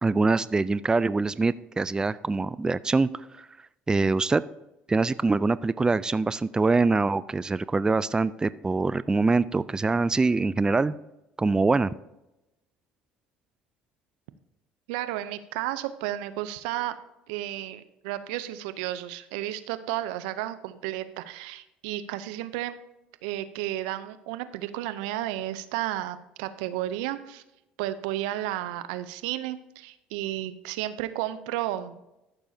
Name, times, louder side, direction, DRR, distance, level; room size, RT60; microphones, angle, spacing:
voice 1, 0.0-3.1 3.4-3.5 3.9-4.4 4.9-10.9 11.4-11.9, right 3 dB, 15° right, 17 dB, 0.3 m, -24 dB
voice 2, 14.9-17.0 17.3-22.7 23.2-27.4 27.8-32.0, right 14 dB, 80° right, 13 dB, 0.6 m, -32 dB
13.5 x 6.8 x 2.7 m, 0.91 s
hypercardioid pair, 70°, 4 cm